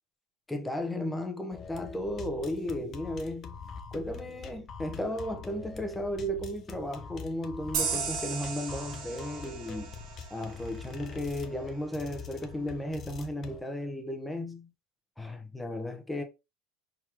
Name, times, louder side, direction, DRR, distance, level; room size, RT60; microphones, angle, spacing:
voice 1, 0.5-3.6 3.9-9.9 10.3-14.7 15.2-16.2, left 1 dB, 5° left, 0.9 m, -35 dB
sound 1, 1.5-13.6, left 6 dB, 35° left, 0.7 m, -44 dB
sound 2, 7.7-11.1, right 6 dB, 60° right, 1.8 m, -36 dB
4.4 x 3.7 x 3.0 m
supercardioid pair, 115°, 0 cm